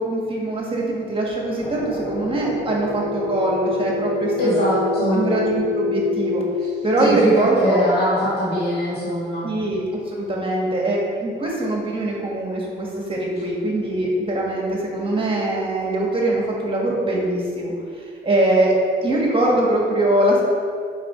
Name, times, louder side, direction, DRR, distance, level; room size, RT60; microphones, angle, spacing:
voice 1, 0.0-4.8 5.1-6.4 6.8-7.8 9.4-17.7 18.2-18.7 19.0-20.4, right 1 dB, 25° right, -3 dB, 1.6 m, -22 dB
sound 1, 1.6-6.4, left 4 dB, 30° left, 1.1 m, -27 dB
voice 2, 4.4-5.2 7.0-9.5, equal, 55° left, -8 dB, 1.8 m, -22 dB
7.3 x 5.4 x 4.4 m, 2.3 s
cardioid pair, 90°, 20 cm